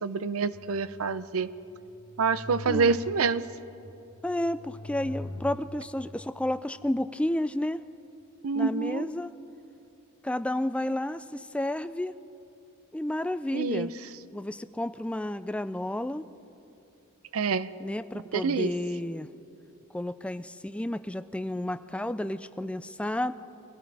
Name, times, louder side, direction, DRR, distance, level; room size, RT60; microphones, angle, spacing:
voice 1, 0.0-1.5 2.2-3.4 8.4-9.1 13.5-13.9 17.3-17.7 18.3-18.7, right 5 dB, 80° right, 14 dB, 0.6 m, -27 dB
sound 1, 0.5-1.4 1.9-3.5 4.0-6.0, left 1 dB, 55° left, 1.3 m, -42 dB
voice 2, 2.7-3.0 4.2-7.8 8.5-9.3 10.2-12.1 12.9-13.9 14.3-16.2 17.8-19.3 19.9-23.3, left 1 dB, 5° left, 12 dB, 0.3 m, -31 dB
24.5 x 16.5 x 3.4 m, 2.7 s
head